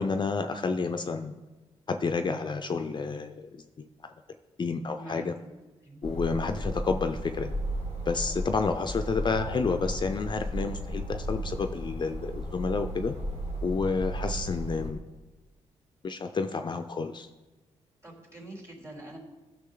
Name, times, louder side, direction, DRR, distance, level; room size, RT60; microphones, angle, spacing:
voice 1, 0.0-1.4 1.9-4.1 4.6-5.3 6.0-7.5 8.1-13.1 13.6-15.0 16.0-17.3, left 4 dB, 40° left, 7 dB, 0.5 m, -30 dB
voice 2, 5.0-5.5 5.8-6.1 18.0-19.2, right 1 dB, 25° right, -1 dB, 2.9 m, -45 dB
sound 1, 6.0-14.9, equal, 60° right, 2.4 m, -34 dB
14.0 x 6.1 x 3.9 m, 1.2 s
cardioid pair, 75°, 12 cm